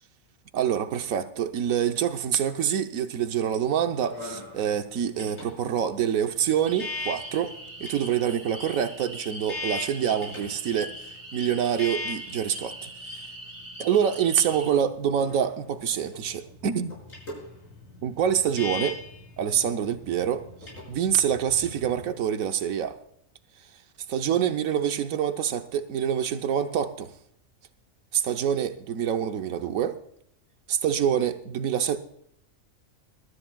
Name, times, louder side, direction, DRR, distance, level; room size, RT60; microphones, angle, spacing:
voice 1, 0.5-7.5 7.8-11.0 11.3-13.3 13.8-16.9 18.0-19.0 19.4-23.0 24.1-27.1 28.1-30.0 30.7-32.0, right 9 dB, 90° right, 1.2 m, -26 dB
sound 1, 3.5-22.1, left 3 dB, 75° left, 6.5 m, -41 dB
sound 2, 6.7-14.7, equal, 60° right, 2.7 m, -42 dB
21.5 x 13.0 x 2.3 m
omnidirectional pair, 1.4 m